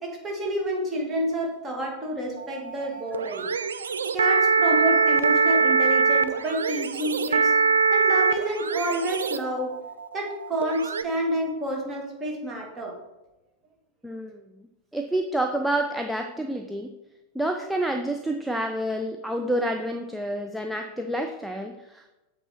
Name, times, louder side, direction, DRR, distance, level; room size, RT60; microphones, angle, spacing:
voice 1, 0.0-7.5 7.9-9.7 10.1-12.9, right 1 dB, 20° right, -1 dB, 1.9 m, -29 dB
sound 1, 2.4-11.0, right 5 dB, 70° right, 0.3 m, -23 dB
voice 2, 14.0-14.4 14.9-16.9 17.3-22.1, right 1 dB, ahead, 3 dB, 0.4 m, -28 dB
8.0 x 3.6 x 4.3 m, 1.0 s
figure-of-eight pair, 90°, 0 cm